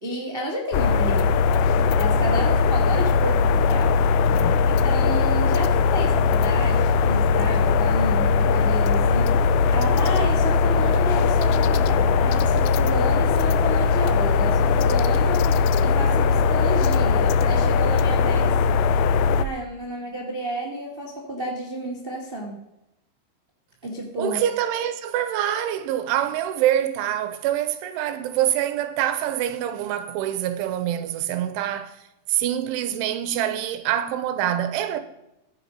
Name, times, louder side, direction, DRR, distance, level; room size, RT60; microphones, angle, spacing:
voice 1, 0.0-1.4 1.9-4.0 4.7-18.6 19.3-22.6 23.8-24.4, right 1 dB, 55° right, 0.6 m, -31 dB
sound 1, 0.7-19.5, left 5 dB, 85° left, 2.6 m, -20 dB
voice 2, 24.2-32.0 32.3-35.0, right 11 dB, 85° right, 3.2 m, -25 dB
15.0 x 8.6 x 5.3 m
omnidirectional pair, 5.6 m